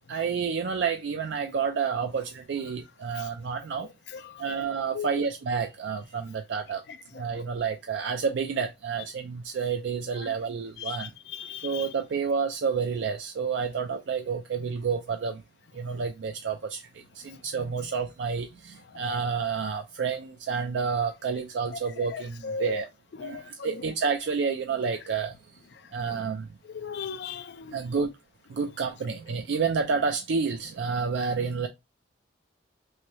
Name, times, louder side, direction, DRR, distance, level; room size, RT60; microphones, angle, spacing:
voice 1, 0.1-3.9 4.4-6.8 7.2-11.1 11.6-15.4 15.7-16.8 17.2-22.9 23.2-25.3 25.9-26.5 27.7-28.1 28.5-31.7, right 5 dB, 70° right, 0.4 m, -29 dB
voice 2, 4.1-4.6 4.9-5.3 7.3-7.4 10.2-10.3 10.8-11.9 18.9-19.2 22.1-22.8 23.2-23.8 26.6-27.8, left 6 dB, 60° left, 0.4 m, -37 dB
3.2 x 2.7 x 2.9 m
head